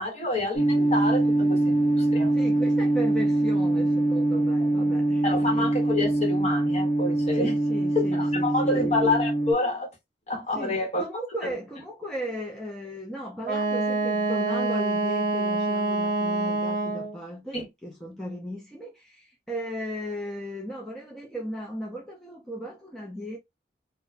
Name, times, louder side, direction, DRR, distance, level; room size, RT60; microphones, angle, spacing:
voice 1, 0.0-2.3 5.2-7.5 7.9-9.9 10.3-11.0 11.4-11.5 17.5-17.6, left 2 dB, 35° left, 1.0 m, -28 dB
sound 1, 0.5-9.5, right 2 dB, 65° left, 0.9 m, -23 dB
voice 2, 2.3-5.7 7.3-9.0 10.5-23.4, equal, 5° left, 0.4 m, -36 dB
Wind instrument woodwind instrument, 13.4-17.2, right 2 dB, 50° right, 0.6 m, -26 dB
2.4 x 2.1 x 3.1 m
head